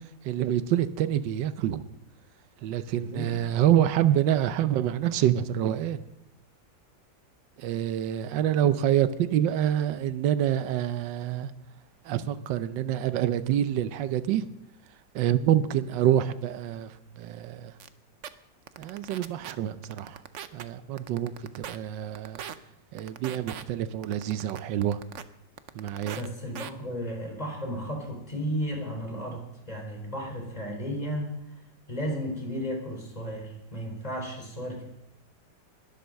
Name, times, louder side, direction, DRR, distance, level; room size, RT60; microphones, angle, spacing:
voice 1, 0.2-1.9 2.6-6.0 7.6-11.5 12.0-14.5 15.1-17.7 18.8-20.2 20.5-22.4 22.9-25.0 25.7-26.2, right 11 dB, 85° right, 11 dB, 1.4 m, -27 dB
voice 2, 3.0-3.3 26.1-31.3 31.9-34.8, equal, 20° left, 1 dB, 4.1 m, -34 dB
sound 1, 17.8-17.9 18.2-18.3 18.7-19.5 19.8-20.6 21.0-21.8 22.1-22.6 23.0-23.6 24.0-25.2 25.6-26.3 26.5-26.7, right 9 dB, 60° right, 0.8 m, -39 dB
21.0 x 8.0 x 6.5 m, 0.84 s
omnidirectional pair, 1.9 m